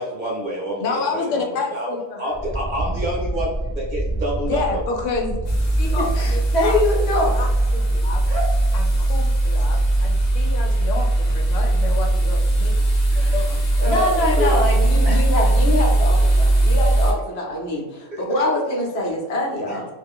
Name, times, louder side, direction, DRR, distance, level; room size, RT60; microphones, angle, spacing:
voice 1, 0.0-4.8 8.3-8.5 13.1-13.3 13.8-14.6 15.0-15.5 18.1-18.2 19.7-19.8, equal, 45° right, -4 dB, 0.8 m, -28 dB
voice 2, 0.8-2.3 4.4-5.4 5.8-6.8 7.3-8.3 8.7-12.8 13.2-13.6, left 4 dB, 90° left, 2 dB, 1.0 m, -29 dB
Wind, 2.3-10.4, right 2 dB, 15° right, 0.4 m, -30 dB
sound 1, 5.4-17.1, right 1 dB, 40° left, 0.7 m, -19 dB
voice 3, 5.9-7.4 13.8-19.9, left 1 dB, 65° left, -1 dB, 0.9 m, -24 dB
2.4 x 2.2 x 3.5 m, 1.1 s
omnidirectional pair, 1.2 m